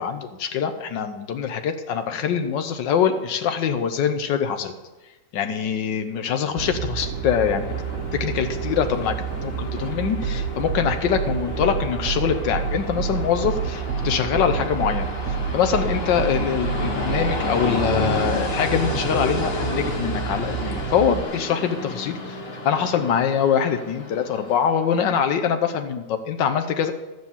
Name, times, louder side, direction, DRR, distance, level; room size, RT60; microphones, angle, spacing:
voice 1, 0.0-4.7 5.3-7.7 8.1-15.1 15.5-26.9, left 7 dB, 90° left, 7 dB, 1.5 m, -24 dB
Train, 6.2-24.9, left 1 dB, 35° left, 1.7 m, -31 dB
sound 1, 6.6-21.2, right 7 dB, 55° right, 1.2 m, -29 dB
13.0 x 7.9 x 7.2 m, 1.1 s
omnidirectional pair, 1.9 m